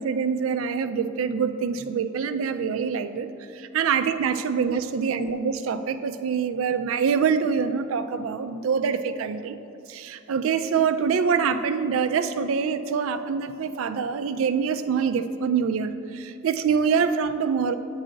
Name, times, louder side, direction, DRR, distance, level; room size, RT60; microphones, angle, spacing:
voice 1, 0.0-3.3 3.5-9.6 9.9-17.7, right 6 dB, 85° right, 11 dB, 0.3 m, -25 dB
7.6 x 4.8 x 3.8 m, 2.7 s
head